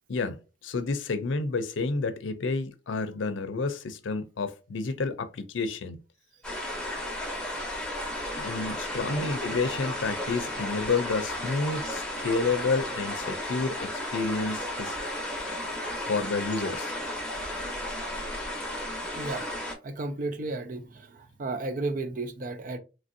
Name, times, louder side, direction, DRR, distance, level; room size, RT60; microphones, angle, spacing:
voice 1, 0.6-6.0 8.4-15.0 16.1-16.9, left 4 dB, 90° left, 0.5 m, -30 dB
sound 1, 6.4-19.7, left 1 dB, 5° left, 0.7 m, -34 dB
voice 2, 9.0-9.3 19.2-19.5 19.8-22.8, right 2 dB, 45° right, 0.4 m, -34 dB
3.1 x 2.5 x 2.6 m
head